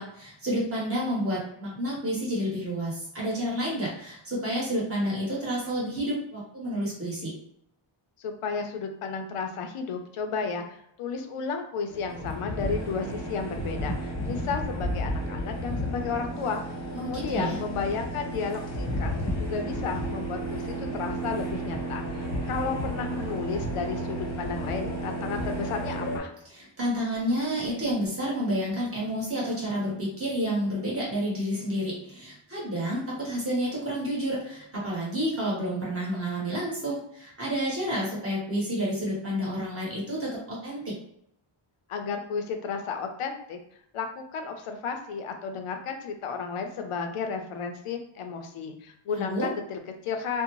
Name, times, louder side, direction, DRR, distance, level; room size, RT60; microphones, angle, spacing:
voice 1, 0.0-7.4 16.9-17.6 26.5-40.9 49.1-49.5, equal, 25° right, -6 dB, 1.1 m, -30 dB
voice 2, 8.2-13.9 14.2-16.6 17.0-26.3 41.9-43.6 43.9-50.4, left 5 dB, 85° left, 5 dB, 0.6 m, -33 dB
sound 1, 11.9-26.2, right 1 dB, 35° left, 0.7 m, -32 dB
2.6 x 2.1 x 2.9 m, 0.72 s
wide cardioid pair, 150°, 50 cm